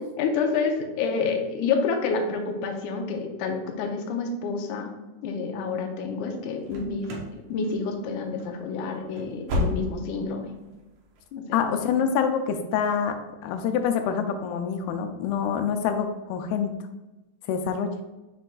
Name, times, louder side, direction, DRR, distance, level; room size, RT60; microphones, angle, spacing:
voice 1, 0.2-4.9 5.2-10.5 11.3-11.7, left 4 dB, 75° left, 2 dB, 2.0 m, -28 dB
sound 1, 6.6-7.4 7.6-8.1 8.4-8.5 9.0-10.2 10.5-10.6 11.2-11.3, left 1 dB, 70° right, 1.7 m, -31 dB
voice 2, 11.5-16.8 17.5-17.9, left 7 dB, 90° left, 7 dB, 2.5 m, -26 dB
6.7 x 6.2 x 2.3 m, 1.1 s
omnidirectional pair, 4.2 m